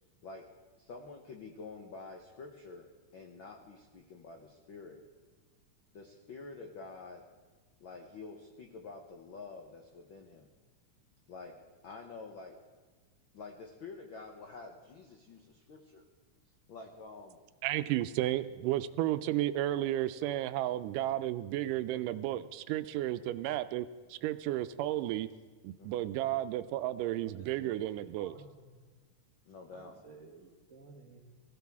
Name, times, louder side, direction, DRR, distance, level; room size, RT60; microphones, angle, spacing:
voice 1, 0.8-5.0 5.9-7.2 7.8-10.5 11.3-12.6 13.3-16.0 16.7-17.4 25.8-26.0 29.4-30.0, left 4 dB, 80° left, 3 dB, 1.1 m, -48 dB
voice 2, 17.6-25.3 25.6-28.4, right 14 dB, 85° right, 12 dB, 2.1 m, -33 dB
voice 3, 27.3-28.6 29.7-31.2, right 4 dB, 40° right, -3 dB, 1.1 m, -54 dB
20.5 x 15.0 x 3.6 m, 1.4 s
omnidirectional pair, 3.7 m